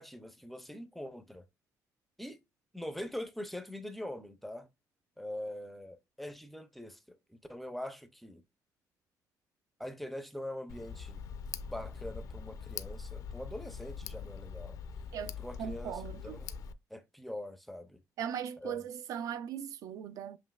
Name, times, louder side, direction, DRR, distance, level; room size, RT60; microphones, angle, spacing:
voice 1, 0.0-1.4 2.2-2.4 2.7-4.7 5.2-8.4 9.8-11.3 11.7-14.8 15.2-16.5 16.9-18.0 18.6-18.9, left 1 dB, ahead, 0.4 m, -43 dB
Tick, 10.7-16.7, left 6 dB, 60° left, 0.4 m, -43 dB
voice 2, 15.6-16.4 18.2-20.4, right 9 dB, 60° right, 0.3 m, -38 dB
7.2 x 3.0 x 2.2 m
cardioid pair, 170°, 7 cm